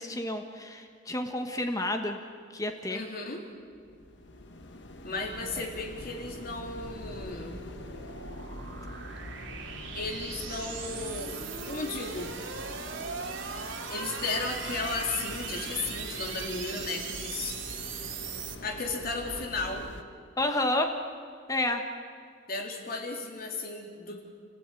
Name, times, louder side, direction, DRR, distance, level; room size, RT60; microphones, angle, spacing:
voice 1, 0.0-2.2 2.5-3.0 5.6-5.7 20.4-20.9 21.5-21.8, left 1 dB, 20° left, 5 dB, 1.4 m, -30 dB
voice 2, 2.9-3.4 5.0-7.6 9.9-11.3 11.6-12.4 13.9-17.6 17.9-18.1 18.6-19.9 22.5-24.2, left 3 dB, 50° left, 1 dB, 3.7 m, -35 dB
sound 1, 3.7-20.0, left 1 dB, 65° left, 1.7 m, -44 dB
sound 2, 4.9-18.5, right 5 dB, 90° right, 2.5 m, -40 dB
30.0 x 16.0 x 9.2 m, 2.2 s
head